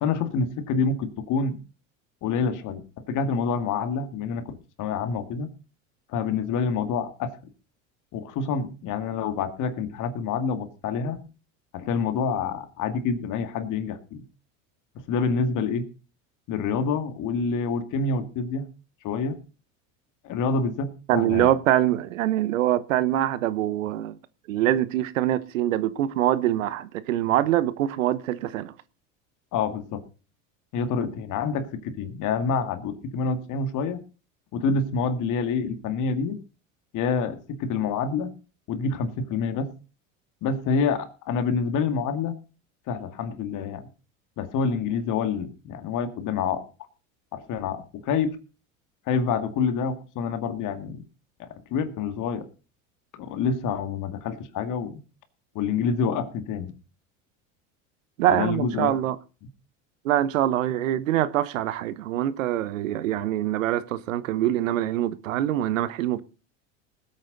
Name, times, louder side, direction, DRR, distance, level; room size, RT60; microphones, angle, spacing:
voice 1, 0.0-1.6 2.2-5.5 6.1-7.4 8.1-11.2 11.7-14.2 15.1-15.9 16.5-18.7 19.0-19.4 20.2-21.5 29.5-30.0 30.7-34.0 34.5-36.4 36.9-38.3 38.7-39.7 40.4-42.4 42.9-43.9 44.4-46.7 47.3-48.4 49.1-51.0 51.4-52.5 53.1-55.0 55.5-56.7 58.3-59.0, left 5 dB, 50° left, 2.2 m, -27 dB
voice 2, 21.1-24.2 24.5-28.7 58.2-59.2 60.0-66.2, right 13 dB, 85° right, 1.0 m, -24 dB
20.0 x 8.6 x 4.0 m
hypercardioid pair, 90°, 38 cm